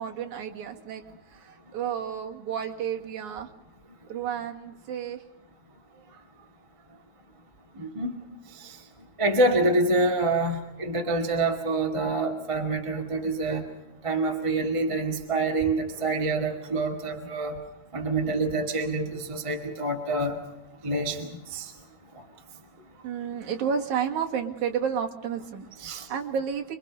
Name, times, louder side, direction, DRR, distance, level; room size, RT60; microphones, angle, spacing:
voice 1, 0.0-3.5 4.1-5.2 5.9-6.5 11.0-11.1 14.1-14.5 18.0-18.1 22.9-26.8, right 7 dB, 65° right, 3 dB, 3.2 m, -32 dB
voice 2, 7.7-8.1 8.6-8.8 9.2-13.6 14.0-17.6 17.9-20.3 20.8-21.7 25.8-26.1, right 2 dB, 10° right, 2 dB, 1.6 m, -26 dB
28.5 x 23.0 x 5.4 m, 0.92 s
omnidirectional pair, 3.9 m